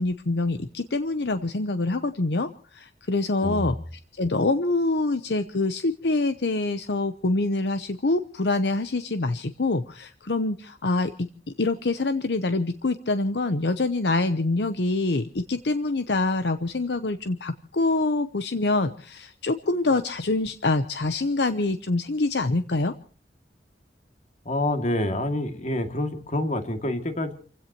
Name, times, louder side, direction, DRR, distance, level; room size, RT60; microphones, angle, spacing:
voice 1, 0.0-3.8 4.2-11.3 11.6-22.9, left 2 dB, 70° left, 10 dB, 0.8 m, -25 dB
voice 2, 3.4-3.8 24.4-27.3, left 1 dB, 45° left, 6 dB, 2.4 m, -27 dB
29.5 x 16.5 x 3.0 m, 0.43 s
head